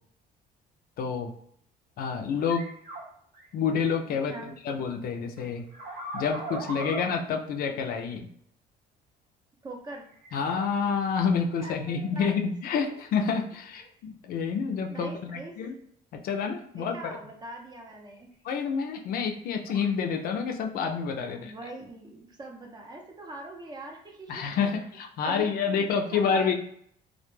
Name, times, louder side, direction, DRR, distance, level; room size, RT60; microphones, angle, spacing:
voice 1, 1.0-1.3 2.0-2.6 3.5-5.6 6.1-8.3 10.3-15.7 16.1-17.2 18.4-21.5 24.3-26.5, left 6 dB, 60° left, 4 dB, 0.4 m, -28 dB
sound 1, 2.4-3.0 3.3-3.4 5.4-7.1 10.1-10.6 18.6-18.7 19.7-19.9, right 2 dB, 75° right, 1.2 m, -38 dB
voice 2, 4.2-4.6 9.6-10.1 11.6-12.4 12.9-13.0 14.9-15.6 16.7-18.3 21.3-24.8 25.2-26.5, right 2 dB, 25° right, 1 dB, 0.5 m, -42 dB
2.1 x 2.0 x 3.1 m, 0.66 s
cardioid pair, 110°, 17 cm